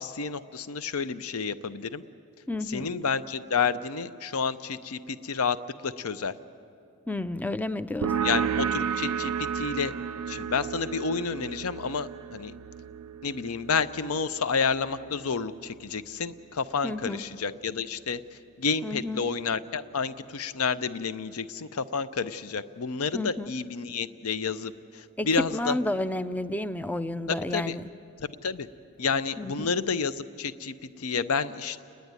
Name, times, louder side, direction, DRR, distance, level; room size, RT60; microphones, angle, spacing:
voice 1, 0.0-2.0 2.7-6.3 8.2-9.9 10.3-12.5 13.2-25.8 27.3-27.7 28.2-28.7 29.0-31.8, left 5 dB, 70° left, 13 dB, 0.6 m, -30 dB
voice 2, 2.5-2.9 7.1-8.1 16.8-17.2 18.8-19.3 23.1-23.5 25.2-27.9 29.4-29.7, left 1 dB, 5° left, 13 dB, 0.4 m, -31 dB
sound 1, 8.0-15.3, right 7 dB, 85° right, 0.4 m, -32 dB
30.0 x 10.5 x 9.6 m, 2.6 s
head